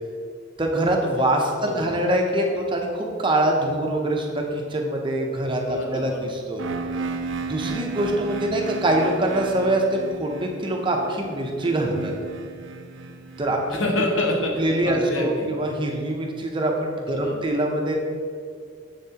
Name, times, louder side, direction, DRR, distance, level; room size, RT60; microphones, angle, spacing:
voice 1, 0.6-6.6 7.5-12.1 13.4-13.8 14.6-18.0, right 1 dB, 25° right, 1 dB, 0.7 m, -24 dB
voice 2, 1.6-1.9 5.7-6.3 13.7-15.5 17.1-17.4, left 1 dB, 75° left, 0 dB, 1.2 m, -27 dB
sound 1, 6.6-14.4, right 4 dB, 65° right, 0.4 m, -34 dB
7.2 x 7.0 x 2.9 m, 2.3 s
head